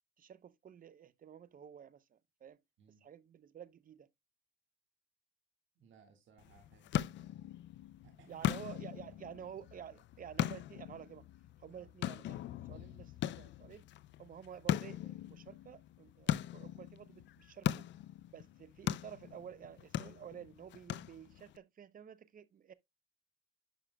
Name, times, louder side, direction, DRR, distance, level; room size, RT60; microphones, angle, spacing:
voice 1, 0.2-2.6 3.0-4.1 8.3-11.3 11.6-12.4 12.6-13.8 14.2-17.8 18.3-22.7, right 8 dB, 45° right, 0.7 m, -51 dB
voice 2, 5.8-7.5 8.0-8.6 9.0-9.4 11.7-11.9, right 5 dB, 75° right, 1.9 m, -63 dB
sound 1, 6.4-21.6, left 12 dB, 65° left, 0.4 m, -40 dB
10.0 x 5.6 x 2.2 m
cardioid pair, 90°, 20 cm